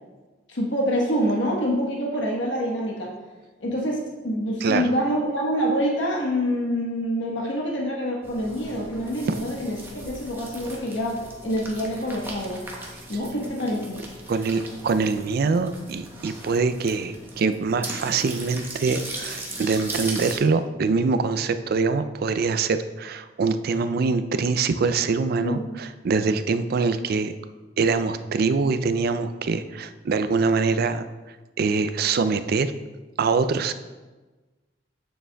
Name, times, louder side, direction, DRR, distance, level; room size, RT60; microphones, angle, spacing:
voice 1, 0.5-3.1 3.6-11.2 11.4-12.6 13.1-14.0 25.4-25.8, equal, 75° left, -2 dB, 1.2 m, -26 dB
sound 1, 8.2-20.4, right 2 dB, 15° right, 1.0 m, -38 dB
voice 2, 14.3-27.3 27.8-31.0 31.6-32.7 33.2-33.7, right 4 dB, 55° right, 11 dB, 0.4 m, -24 dB
8.6 x 6.9 x 2.3 m, 1.2 s
head